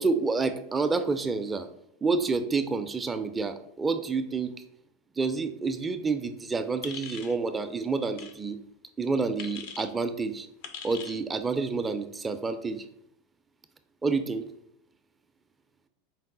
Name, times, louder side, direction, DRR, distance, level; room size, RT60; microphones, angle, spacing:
voice 1, 0.0-1.7 2.0-4.5 5.2-8.6 9.0-10.5 10.8-12.8 14.0-14.5, right 4 dB, 15° right, 9 dB, 0.3 m, -28 dB
sound 1, 6.8-7.4 8.1-8.3 9.4-9.9 10.6-11.2, left 6 dB, 65° left, 0.5 m, -41 dB
4.6 x 2.1 x 3.7 m, 0.72 s
hypercardioid pair, 110°, 0 cm